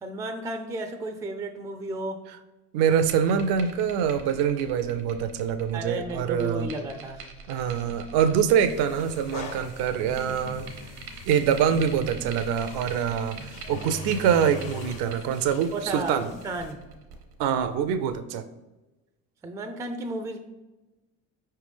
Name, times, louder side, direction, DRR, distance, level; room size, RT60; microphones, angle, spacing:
voice 1, 0.0-2.2 5.7-7.2 15.7-16.1 16.4-16.8 19.4-20.4, right 2 dB, 10° right, 6 dB, 0.3 m, -33 dB
voice 2, 2.7-6.7 7.5-10.7 11.3-16.3 17.4-18.5, right 8 dB, 60° right, 11 dB, 0.5 m, -25 dB
sound 1, 2.9-18.1, right 5 dB, 80° right, 0.9 m, -44 dB
sound 2, 7.7-15.3, left 1 dB, 75° left, 1.1 m, -46 dB
sound 3, 8.6-16.7, left 4 dB, 45° left, 0.8 m, -43 dB
4.8 x 3.3 x 3.3 m, 1.1 s
hypercardioid pair, 65°, 46 cm